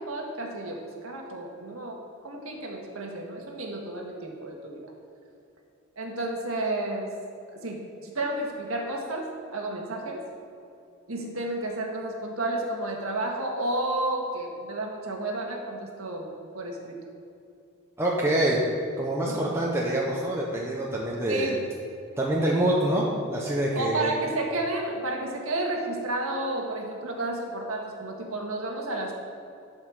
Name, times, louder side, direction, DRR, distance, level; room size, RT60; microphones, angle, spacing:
voice 1, 0.0-2.0 2.2-4.8 6.0-7.1 7.5-10.2 11.1-16.3 16.5-17.0 19.3-19.5 21.3-21.6 23.7-29.1, right 2 dB, 85° right, 0 dB, 1.8 m, -31 dB
voice 2, 18.0-18.6 19.0-21.5 22.2-24.1, right 1 dB, 15° right, -4 dB, 1.0 m, -26 dB
11.5 x 5.6 x 6.5 m, 2.6 s
head